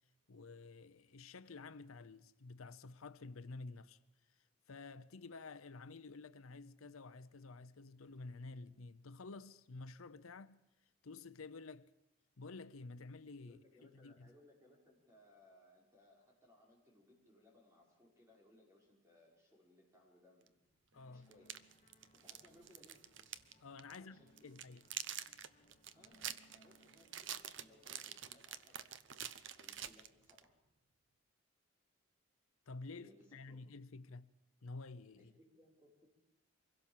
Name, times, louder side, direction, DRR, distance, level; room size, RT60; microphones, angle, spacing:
voice 1, 0.3-4.0 4.7-10.6 11.0-11.9 12.4-14.3 20.9-21.3 23.6-24.8 32.7-34.3 34.6-35.3, left 3 dB, 85° left, 0.7 m, -51 dB
voice 2, 13.4-20.5 21.0-21.7 22.1-23.1 23.9-24.6 25.9-28.9 29.5-30.6 32.9-33.6 35.2-36.1, left 1 dB, 15° right, 5.7 m, -66 dB
sound 1, 20.5-20.6 21.3-23.5 23.8-24.0 24.4-30.4, right 10 dB, 60° right, 0.8 m, -47 dB
sound 2, 20.9-28.7, equal, 30° left, 2.3 m, -70 dB
24.5 x 16.5 x 7.4 m
head